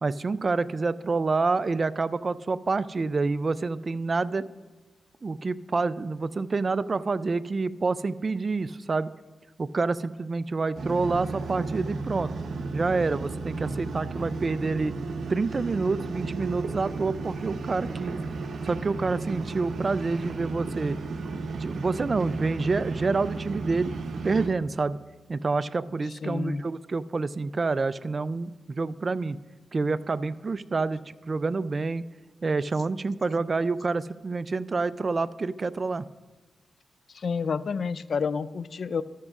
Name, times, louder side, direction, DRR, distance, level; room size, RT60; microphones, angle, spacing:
voice 1, 0.0-4.5 5.2-9.1 9.6-12.3 12.7-14.9 15.3-18.2 18.6-21.0 21.5-23.9 24.2-25.0 25.3-29.4 29.7-32.1 32.4-36.0, right 3 dB, 45° right, 15 dB, 0.4 m, -27 dB
sound 1, 10.7-24.5, right 3 dB, 80° right, 0.8 m, -34 dB
voice 2, 26.2-26.6 37.1-39.0, left 5 dB, 65° left, 16 dB, 0.4 m, -29 dB
13.5 x 13.0 x 2.5 m, 1.2 s
cardioid pair, 70°, 0 cm